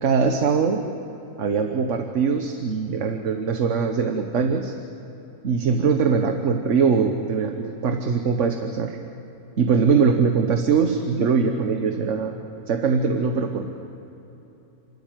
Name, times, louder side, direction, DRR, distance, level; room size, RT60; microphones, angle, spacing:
voice 1, 0.0-0.8 1.4-4.8 5.4-9.0 9.6-12.3 12.7-13.7, right 5 dB, 55° right, 5 dB, 1.4 m, -22 dB
29.5 x 13.5 x 9.2 m, 3.0 s
omnidirectional pair, 1.5 m